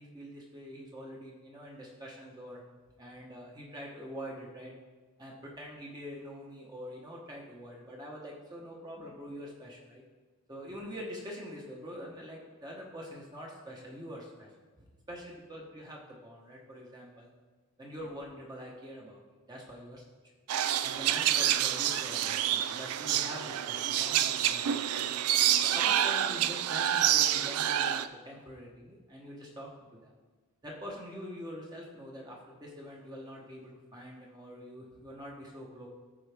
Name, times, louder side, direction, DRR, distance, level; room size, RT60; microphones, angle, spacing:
voice 1, 0.0-2.6 3.0-4.7 5.2-10.0 10.5-17.3 17.8-19.2 19.5-20.0 20.8-25.1 25.6-30.1 30.6-35.9, equal, 20° right, -2 dB, 1.0 m, -45 dB
sound 1, 20.5-28.1, right 11 dB, 85° right, 0.4 m, -28 dB
13.5 x 4.7 x 3.5 m, 1.4 s
head